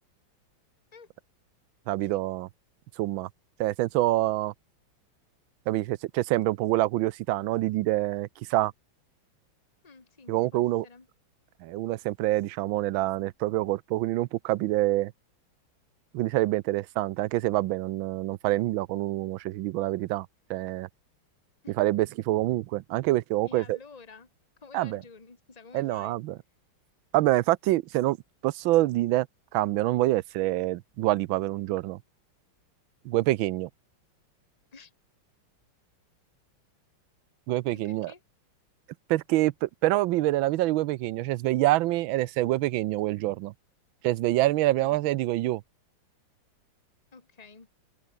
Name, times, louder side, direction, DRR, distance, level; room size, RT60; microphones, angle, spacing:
voice 1, 1.9-2.5 3.0-3.3 3.6-4.5 5.7-8.7 10.3-10.9 11.6-15.1 16.1-20.9 21.8-23.8 24.7-25.0 25.7-26.4 27.1-28.2 28.4-29.3 29.5-32.0 33.0-33.7 37.5-38.1 39.1-43.5 44.0-45.6, right 16 dB, 80° right, 1.4 m, -26 dB
voice 2, 9.8-11.1 21.6-21.8 23.4-24.3 24.6-26.2 34.7-34.9 37.7-38.2 44.8-45.0 47.1-47.7, left 4 dB, 20° left, 2.1 m, -50 dB
open air
omnidirectional pair, 2.2 m